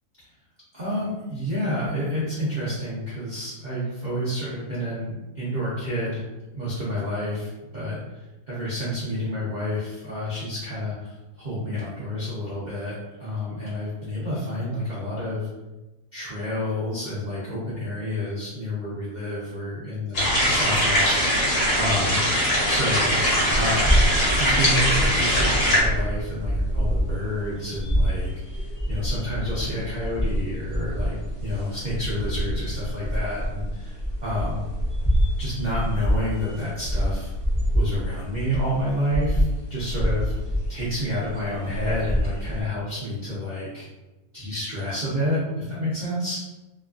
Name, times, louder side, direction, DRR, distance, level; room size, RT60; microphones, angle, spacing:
voice 1, 0.7-6.2 6.5-8.0 8.5-15.5 16.1-31.2 31.4-34.6 35.4-37.3 37.7-39.4 39.7-40.3 40.7-43.9 44.3-46.4, left 1 dB, 45° right, -10 dB, 0.6 m, -29 dB
sound 1, 20.1-25.8, equal, 70° left, 1.4 m, -21 dB
sound 2, 23.5-42.6, equal, 20° left, 0.5 m, -27 dB
3.0 x 2.3 x 2.4 m, 1.1 s
omnidirectional pair, 1.7 m